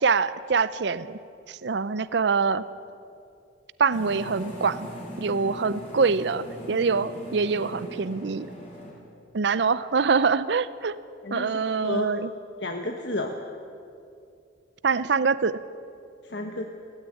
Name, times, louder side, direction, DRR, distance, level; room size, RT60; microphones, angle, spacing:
voice 1, 0.0-1.2 1.5-2.6 3.8-4.9 5.2-8.5 9.3-10.9 11.3-12.3 14.8-15.6, right 5 dB, 60° right, 16 dB, 0.5 m, -24 dB
sound 1, 3.9-8.9, equal, 30° left, 5.5 m, -40 dB
voice 2, 11.8-12.1 12.6-13.4 16.2-16.7, left 2 dB, 65° left, 4 dB, 1.2 m, -31 dB
16.0 x 16.0 x 9.8 m, 2.5 s
head